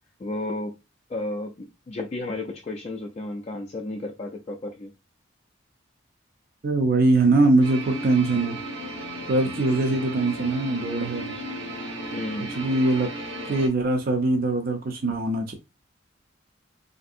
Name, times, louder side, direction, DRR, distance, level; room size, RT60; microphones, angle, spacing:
voice 1, 0.2-0.7 1.1-4.9 12.1-12.6, left 2 dB, 30° left, 0.3 m, -32 dB
voice 2, 6.6-8.6 9.3-11.3 12.6-13.1 13.5-15.5, right 2 dB, 50° right, 0.5 m, -22 dB
sound 1, 7.6-13.7, right 1 dB, 75° right, 1.1 m, -35 dB
3.2 x 2.6 x 2.6 m
head